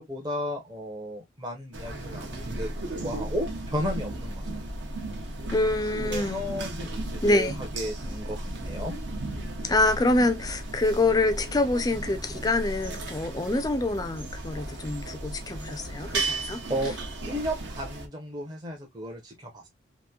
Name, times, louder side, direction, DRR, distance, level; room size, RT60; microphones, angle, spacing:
voice 1, 0.0-4.4 6.0-8.9 16.7-16.9 17.2-19.7, equal, 20° right, 0.6 m, -34 dB
sound 1, 1.7-18.1, right 2 dB, 70° right, 0.8 m, -35 dB
voice 2, 5.5-6.4 7.2-7.6 9.6-16.6, left 2 dB, 20° left, 0.3 m, -26 dB
2.9 x 2.5 x 2.2 m
head